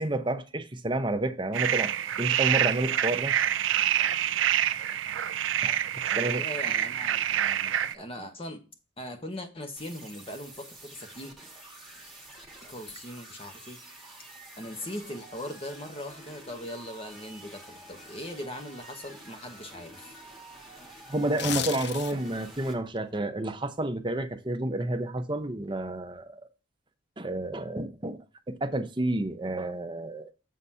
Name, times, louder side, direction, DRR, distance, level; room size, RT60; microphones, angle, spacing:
voice 1, 0.0-1.9 2.2-3.4 5.6-5.8 6.0-6.4 21.1-26.5 27.2-28.2 28.5-30.3, right 1 dB, 25° right, 0.7 m, -30 dB
sound 1, 1.5-7.9, right 10 dB, 75° right, 0.4 m, -27 dB
voice 2, 6.1-8.6 9.0-11.3 12.7-13.8 14.6-20.2, left 1 dB, 30° left, 1.2 m, -40 dB
sound 2, 9.8-22.7, right 2 dB, ahead, 1.8 m, -48 dB
sound 3, 21.2-22.4 22.8-23.0, left 9 dB, 60° left, 0.5 m, -33 dB
7.4 x 4.1 x 5.5 m
head